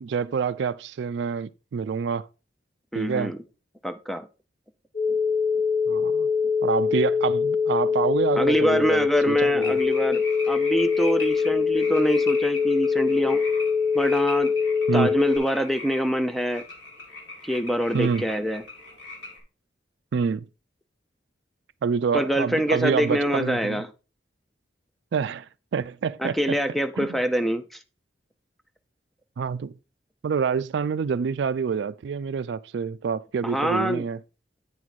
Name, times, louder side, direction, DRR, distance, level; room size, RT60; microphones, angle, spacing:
voice 1, 0.0-2.3 2.9-3.3 5.9-6.3 6.6-9.8 14.9-15.1 17.9-18.2 20.1-20.5 21.8-23.8 25.1-26.4 27.0-27.2 29.4-29.7 30.2-34.2, right 6 dB, 70° right, 0.3 m, -27 dB
voice 2, 2.9-3.4 3.8-4.3 8.3-13.4 13.9-14.5 14.9-16.6 17.4-18.6 22.1-23.9 26.2-27.8 33.4-34.0, equal, ahead, 0.5 m, -25 dB
sound 1, 4.9-15.4, left 5 dB, 45° left, 1.3 m, -23 dB
sound 2, 9.6-19.4, left 2 dB, 75° left, 2.3 m, -40 dB
9.2 x 4.6 x 4.1 m
head